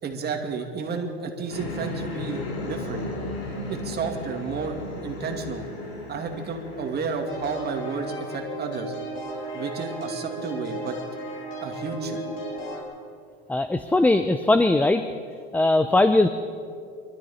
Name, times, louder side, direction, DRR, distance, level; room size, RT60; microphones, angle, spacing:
voice 1, 0.0-3.0 3.7-5.7 6.1-8.9 9.5-11.0 11.6-12.2, right 4 dB, 30° right, 3 dB, 2.3 m, -31 dB
sound 1, 1.5-8.5, left 1 dB, 75° left, 3.4 m, -35 dB
sound 2, 7.3-12.8, right 1 dB, 40° left, 4.2 m, -34 dB
voice 2, 13.5-15.0 15.5-16.3, left 2 dB, 5° left, 10 dB, 0.5 m, -20 dB
24.5 x 13.0 x 4.3 m, 2.3 s
supercardioid pair, 105°, 31 cm